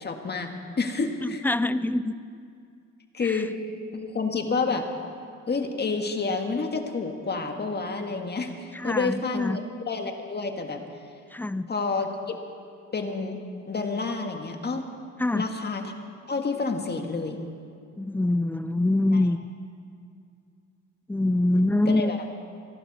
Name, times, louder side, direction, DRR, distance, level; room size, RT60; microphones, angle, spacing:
voice 1, 0.0-1.4 3.1-3.5 3.9-4.9 5.5-10.8 11.7-12.4 12.9-14.9 15.3-15.8 16.3-17.4 19.1-19.2 21.9-22.2, left 4 dB, 35° left, 4 dB, 1.8 m, -29 dB
voice 2, 1.2-2.1 3.2-3.4 8.7-9.6 11.3-11.7 15.2-15.5 18.0-19.4 21.1-22.1, left 2 dB, 5° left, 15 dB, 0.4 m, -24 dB
27.0 x 12.0 x 4.2 m, 2.4 s
cardioid pair, 90°, 30 cm